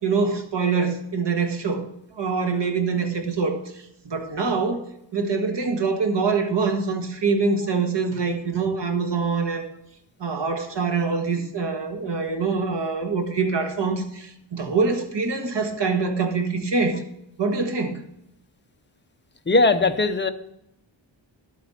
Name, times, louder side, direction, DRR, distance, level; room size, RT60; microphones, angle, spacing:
voice 1, 0.0-1.8 2.2-3.6 4.0-4.8 5.1-9.7 10.2-17.0 17.4-18.0, right 4 dB, 65° right, 4 dB, 1.6 m, -24 dB
voice 2, 19.5-20.3, left 3 dB, 25° left, 8 dB, 0.7 m, -19 dB
11.5 x 8.6 x 4.2 m, 0.81 s
wide cardioid pair, 125°, 46 cm